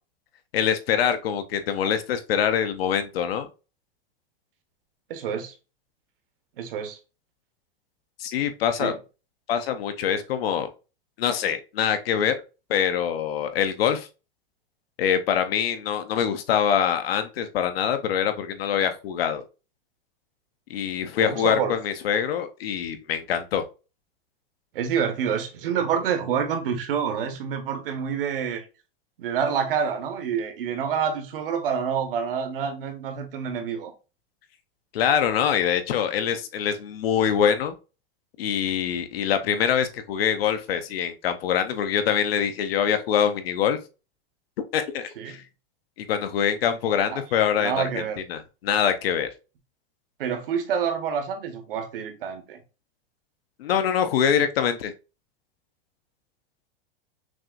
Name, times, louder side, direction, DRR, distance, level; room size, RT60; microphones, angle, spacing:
voice 1, 0.5-3.5 8.2-8.9 9.5-10.7 11.2-12.4 12.7-14.1 15.0-19.4 20.7-23.6 34.9-37.7 38.4-43.8 44.7-45.4 46.0-47.9 48.3-49.3 53.6-54.9, left 8 dB, 85° left, 0.8 m, -24 dB
voice 2, 5.1-5.5 6.6-7.0 8.8-8.9 21.2-21.7 24.7-28.6 29.2-33.9 45.2-45.4 47.1-47.2 47.6-48.2 50.2-52.6, right 7 dB, 70° right, 1.0 m, -27 dB
6.0 x 2.6 x 2.4 m
supercardioid pair, 180°, 29 cm